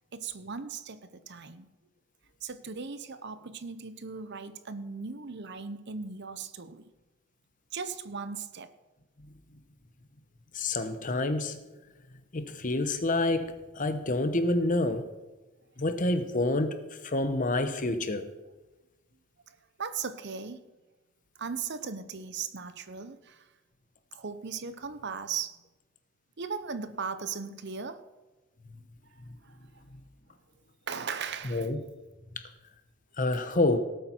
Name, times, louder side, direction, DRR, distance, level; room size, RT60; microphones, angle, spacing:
voice 1, 0.1-1.7 2.4-6.9 7.7-8.7 19.5-20.7 21.4-23.5 24.1-25.6 26.4-28.0 29.4-29.8 30.9-31.7 33.3-33.4, right 5 dB, 55° right, 0.8 m, -38 dB
voice 2, 10.5-11.6 12.3-15.1 15.8-16.7 17.0-18.2 31.4-31.8 32.4-32.5 33.2-33.8, left 2 dB, 40° left, 0.9 m, -28 dB
18.0 x 8.2 x 4.5 m
head